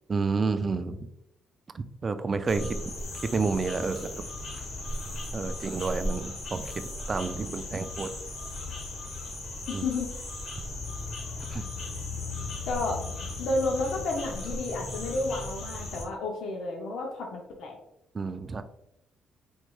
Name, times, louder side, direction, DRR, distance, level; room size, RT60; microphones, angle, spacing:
voice 1, 0.1-1.1 1.7-2.8 3.2-4.1 5.3-8.1 9.7-9.8 11.5-11.6 18.1-18.6, right 4 dB, 35° right, 10 dB, 0.3 m, -30 dB
sound 1, 2.5-16.1, left 2 dB, 60° left, 1.0 m, -36 dB
voice 2, 9.7-10.1 12.7-13.0 13.4-17.8, left 2 dB, 75° left, 1 dB, 0.6 m, -31 dB
4.4 x 3.0 x 2.3 m, 0.83 s
cardioid pair, 90°, 0 cm